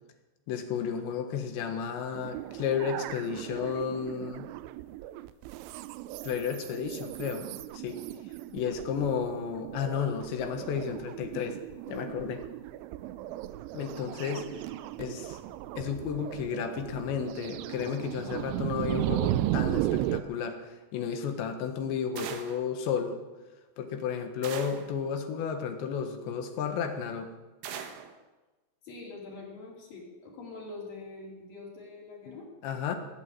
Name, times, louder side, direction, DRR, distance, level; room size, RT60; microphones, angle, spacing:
voice 1, 0.5-4.5 6.2-7.5 7.7-8.0 8.5-11.6 11.9-12.4 13.7-14.6 15.0-15.4 15.8-23.2 23.8-27.3 32.3-32.4 32.6-33.0, left 7 dB, 75° left, 6 dB, 3.5 m, -32 dB
sound 1, 2.1-20.2, right 14 dB, 85° right, 3.1 m, -36 dB
sound 2, 22.2-22.7 24.4-25.0 27.6-28.1, right 8 dB, 70° right, 3.0 m, -40 dB
voice 2, 28.8-32.5, left 3 dB, 50° left, -3 dB, 5.5 m, -44 dB
19.0 x 8.5 x 8.9 m, 1.2 s
omnidirectional pair, 5.4 m